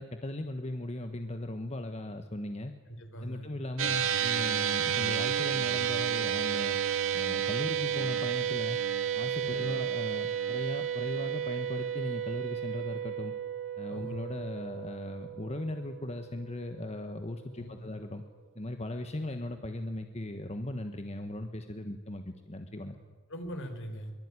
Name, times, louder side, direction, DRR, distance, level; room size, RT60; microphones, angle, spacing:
voice 1, 0.0-2.7 3.2-6.8 7.1-8.8 9.1-13.3 13.8-18.2 18.5-23.0, left 1 dB, 30° left, 6 dB, 1.4 m, -38 dB
voice 2, 2.9-3.5 9.4-9.8 13.9-14.3 17.5-17.8 23.3-24.1, equal, 60° left, 7 dB, 4.1 m, -41 dB
sound 1, 3.8-16.3, right 9 dB, 70° right, 2.1 m, -32 dB
23.5 x 23.0 x 9.9 m, 1.3 s
head